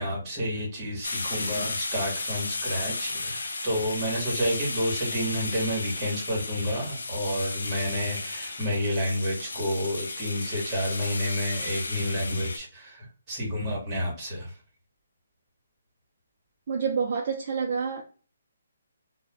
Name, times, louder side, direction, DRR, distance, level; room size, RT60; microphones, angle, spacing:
voice 1, 0.0-14.5, equal, 20° right, 1.1 m, -30 dB
sound 1, 1.0-12.6, left 3 dB, 90° left, 0.5 m, -34 dB
voice 2, 16.7-18.0, right 6 dB, 40° right, 0.4 m, -28 dB
2.3 x 2.1 x 3.1 m
hypercardioid pair, 165°, 0 cm